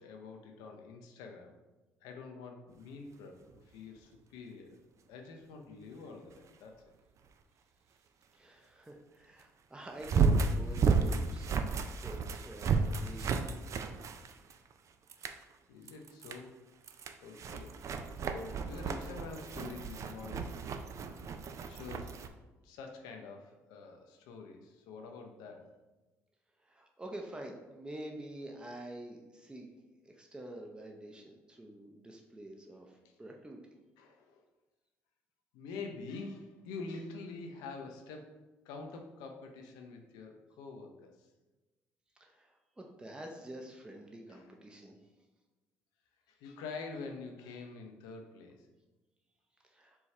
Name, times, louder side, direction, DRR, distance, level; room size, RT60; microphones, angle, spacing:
voice 1, 0.0-1.5 2.0-4.8 5.1-6.8 15.2-15.3 15.7-16.6 17.2-17.8 18.2-20.6 21.6-22.2 22.6-25.7 32.7-32.8 34.0-34.4 35.5-38.3 38.6-41.3 44.3-44.6 46.3-48.7, left 4 dB, 80° left, 3 dB, 0.6 m, -46 dB
sound 1, 3.5-3.6 10.0-14.7 15.1-15.4 15.9-16.4 16.8-22.3, right 5 dB, 50° right, 0.4 m, -33 dB
voice 2, 8.3-13.5 26.7-29.7 30.0-32.9 33.2-33.6 42.2-42.5 42.8-45.0 49.7-50.0, right 1 dB, 15° right, 1 dB, 0.7 m, -47 dB
4.5 x 2.3 x 4.2 m, 1.1 s
hypercardioid pair, 60°, 7 cm